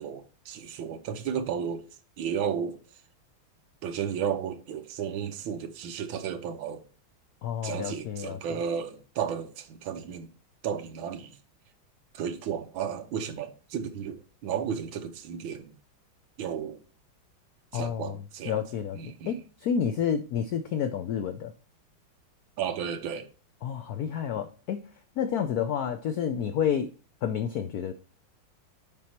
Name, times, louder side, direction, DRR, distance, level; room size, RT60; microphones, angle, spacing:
voice 1, 0.0-1.8 2.2-2.8 3.8-6.8 7.6-10.3 10.6-11.3 12.1-14.2 14.4-15.7 16.4-16.8 17.7-18.6 18.9-19.3 22.6-23.3, right 8 dB, 75° right, 1.6 m, -33 dB
voice 2, 7.4-8.6 17.7-21.5 23.6-24.8 25.2-26.9 27.2-27.9, left 8 dB, 85° left, 0.8 m, -30 dB
7.4 x 5.3 x 4.3 m
omnidirectional pair, 2.3 m